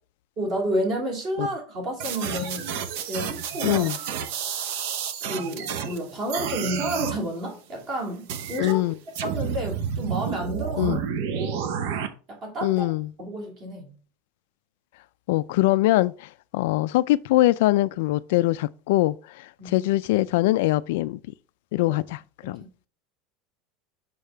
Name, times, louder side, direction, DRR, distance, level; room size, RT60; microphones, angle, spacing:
voice 1, 0.4-2.7 3.1-3.9 5.2-8.8 9.2-11.0 11.3-11.8 12.3-12.9 13.2-13.9 19.6-19.8 22.4-22.6, right 1 dB, 35° right, 2.6 m, -31 dB
sound 1, 2.0-6.0 6.3-7.2 8.3-8.7 9.2-12.1, right 8 dB, 60° right, 0.8 m, -30 dB
voice 2, 3.6-4.0 8.6-8.9 10.8-11.0 12.6-13.1 15.3-21.2 21.7-22.6, left 17 dB, 65° left, 0.3 m, -23 dB
6.6 x 5.4 x 3.3 m
supercardioid pair, 180°, 0 cm